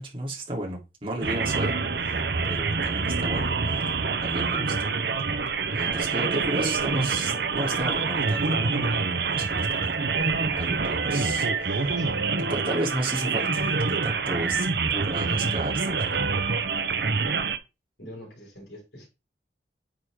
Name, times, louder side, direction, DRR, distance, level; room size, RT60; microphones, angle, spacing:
voice 1, 0.0-3.9 4.2-4.9 5.7-9.9 10.2-12.0 12.5-14.7 14.9-16.2, right 1 dB, 30° right, 3.3 m, -33 dB
sound 1, 1.2-17.6, right 4 dB, 65° right, 0.9 m, -26 dB
voice 2, 15.3-15.8 18.0-19.1, equal, 75° left, 5.1 m, -45 dB
9.3 x 6.4 x 3.7 m
head